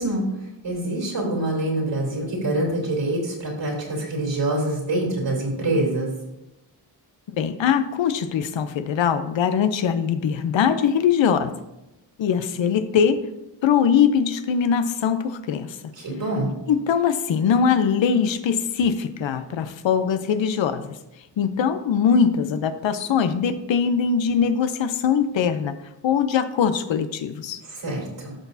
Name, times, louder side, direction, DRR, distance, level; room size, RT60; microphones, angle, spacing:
voice 1, 0.0-6.1 15.9-16.5 27.6-28.3, right 1 dB, 70° right, -2 dB, 3.3 m, -25 dB
voice 2, 7.3-11.5 12.2-13.2 13.6-15.8 16.7-20.9 21.4-25.8 26.0-27.6, left 7 dB, 80° left, 11 dB, 0.8 m, -21 dB
12.5 x 6.0 x 2.7 m, 0.94 s
cardioid pair, 50°, 45 cm